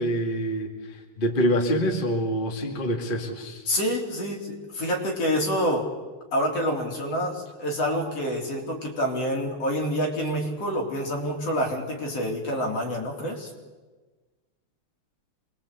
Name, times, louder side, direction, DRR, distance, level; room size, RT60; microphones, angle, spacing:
voice 1, 0.0-3.6, equal, 20° left, 2 dB, 2.2 m, -26 dB
voice 2, 3.7-5.9 6.3-13.5, equal, 55° left, 0 dB, 4.6 m, -27 dB
26.0 x 21.5 x 8.3 m, 1.3 s
omnidirectional pair, 3.4 m